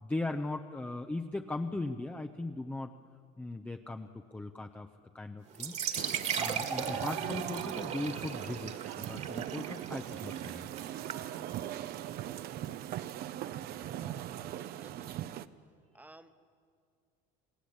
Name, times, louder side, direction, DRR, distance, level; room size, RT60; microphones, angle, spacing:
voice 1, 0.0-2.9 3.4-4.9 5.1-5.7 6.3-10.7, left 2 dB, 10° left, 5 dB, 0.7 m, -38 dB
sound 1, 5.5-13.1, right 7 dB, 40° right, 1.9 m, -39 dB
sound 2, 6.0-15.5, right 12 dB, 55° right, 0.8 m, -40 dB
voice 2, 13.7-15.5 15.9-16.3, right 2 dB, 10° right, 9 dB, 1.2 m, -55 dB
28.5 x 18.5 x 8.7 m, 2.3 s
cardioid pair, 135°, 19 cm